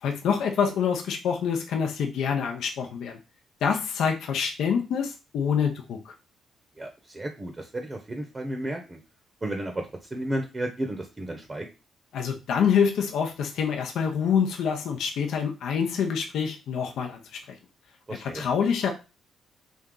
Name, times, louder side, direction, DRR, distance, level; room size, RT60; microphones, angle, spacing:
voice 1, 0.0-3.2 3.6-6.1 12.1-17.4 18.1-18.9, left 7 dB, 75° left, 2 dB, 0.6 m, -26 dB
voice 2, 6.8-9.0 9.4-11.6 18.1-18.5, right 1 dB, 25° right, 3 dB, 0.7 m, -33 dB
3.5 x 2.7 x 3.7 m, 0.30 s
cardioid pair, 90°, 0 cm